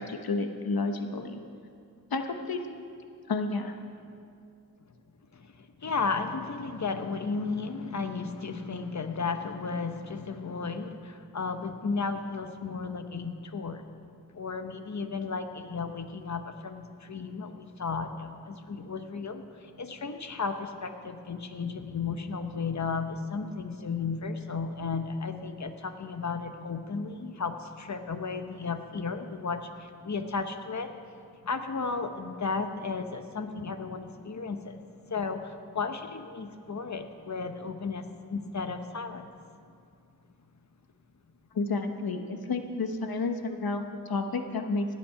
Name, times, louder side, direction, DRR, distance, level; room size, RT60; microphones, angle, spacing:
voice 1, 0.0-1.4 2.1-2.8 3.3-3.8 41.5-44.9, left 3 dB, 85° left, 6 dB, 1.0 m, -31 dB
voice 2, 5.8-13.8 14.3-30.9 31.4-34.8 35.1-39.3, left 4 dB, 50° left, 8 dB, 1.0 m, -34 dB
16.5 x 8.5 x 5.7 m, 2.3 s
wide cardioid pair, 70°, 35 cm